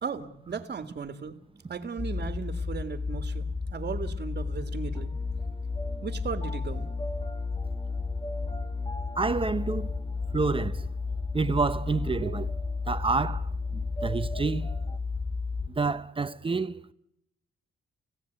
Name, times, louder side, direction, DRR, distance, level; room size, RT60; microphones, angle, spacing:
voice 1, 0.0-1.3 1.7-5.1 6.0-6.9, right 6 dB, 45° right, 1.9 m, -36 dB
sound 1, 2.0-15.7, left 4 dB, 5° left, 1.1 m, -32 dB
sound 2, 4.2-15.0, right 1 dB, 25° left, 1.9 m, -46 dB
voice 2, 9.2-9.9 10.3-10.9 11.3-12.5 12.9-14.7 15.8-16.8, right 4 dB, 25° right, 0.9 m, -28 dB
29.5 x 16.5 x 9.2 m
cardioid pair, 95°, 21 cm